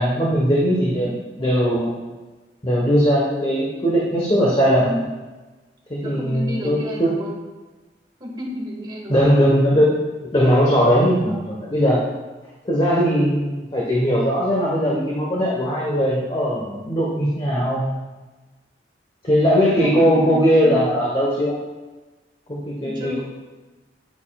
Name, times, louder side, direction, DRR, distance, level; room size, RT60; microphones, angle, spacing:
voice 1, 0.0-1.9 2.6-5.0 5.9-7.1 9.1-9.9 10.3-12.0 12.6-17.8 19.2-21.6 22.5-23.2, equal, 30° left, -4 dB, 1.1 m, -19 dB
voice 2, 6.0-7.4 8.2-9.2 19.7-20.9 22.8-23.2, equal, 25° right, -4 dB, 1.9 m, -32 dB
9.7 x 8.7 x 2.3 m, 1.2 s
head